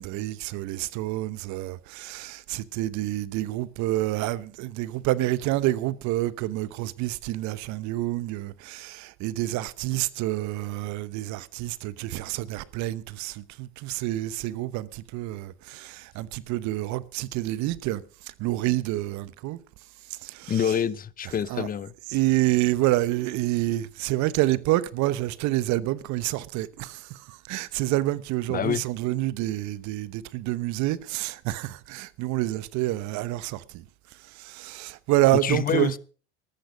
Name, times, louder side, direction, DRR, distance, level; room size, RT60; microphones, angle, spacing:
voice 1, 0.0-19.6 20.1-20.7 21.2-21.7 22.1-33.8 34.2-36.0, right 16 dB, 55° right, 1.0 m, -28 dB
voice 2, 20.5-21.9 28.5-28.8 35.4-36.0, left 8 dB, 25° left, 0.8 m, -26 dB
13.5 x 13.5 x 5.1 m
hypercardioid pair, 90°, 33 cm